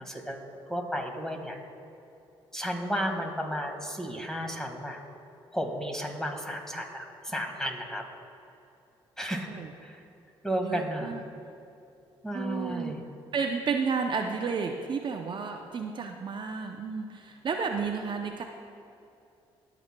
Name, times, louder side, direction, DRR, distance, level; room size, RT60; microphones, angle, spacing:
voice 1, 0.0-1.6 2.5-5.0 5.5-8.0 9.2-10.0 10.4-11.2 12.2-13.0, equal, 5° left, 2 dB, 1.6 m, -33 dB
voice 2, 9.3-9.7 10.6-11.2 12.3-13.0 13.3-18.4, right 5 dB, 45° right, 4 dB, 0.6 m, -32 dB
17.0 x 6.1 x 2.2 m, 2.7 s
supercardioid pair, 65°, 11 cm